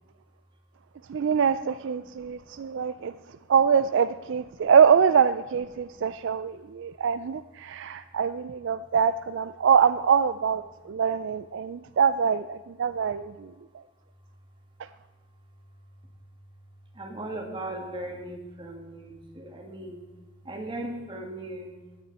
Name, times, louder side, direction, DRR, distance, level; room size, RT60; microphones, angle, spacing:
voice 1, 1.1-3.1 3.5-10.6 10.9-13.3, right 7 dB, 60° right, 12 dB, 0.4 m, -24 dB
voice 2, 17.0-20.0 20.4-21.7, right 1 dB, 25° right, 1 dB, 2.2 m, -37 dB
17.0 x 10.5 x 4.2 m, 1.3 s
head